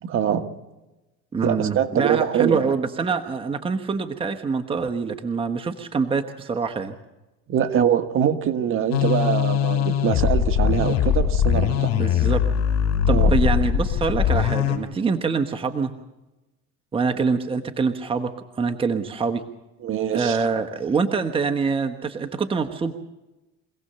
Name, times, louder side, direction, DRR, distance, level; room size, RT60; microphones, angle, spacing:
voice 1, 0.0-0.5 1.4-2.7 7.5-11.9 13.1-13.3 19.8-20.4, right 9 dB, 45° right, 7 dB, 1.6 m, -23 dB
voice 2, 1.3-6.9 11.9-12.4 13.1-15.9 16.9-18.3 18.6-19.4 20.1-22.9, right 5 dB, 20° right, 6 dB, 1.2 m, -25 dB
sound 1, 8.9-14.8, left 8 dB, 55° left, 3.8 m, -21 dB
25.0 x 17.0 x 6.9 m, 1.0 s
cardioid pair, 125°, 29 cm